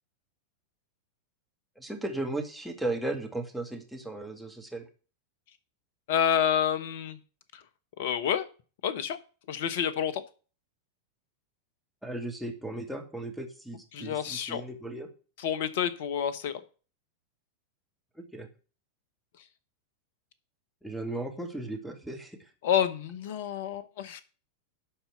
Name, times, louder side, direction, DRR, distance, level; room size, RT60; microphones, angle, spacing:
voice 1, 1.8-4.9 12.0-15.1 18.2-18.5 20.8-22.5, right 2 dB, ahead, 5 dB, 2.0 m, -36 dB
voice 2, 6.1-7.2 7.5-7.6 8.0-8.5 8.8-9.2 9.5-10.2 13.9-14.6 15.4-16.6 22.6-24.2, left 8 dB, 55° left, 14 dB, 1.0 m, -28 dB
11.5 x 4.3 x 7.0 m, 0.38 s
figure-of-eight pair, 90°, 0 cm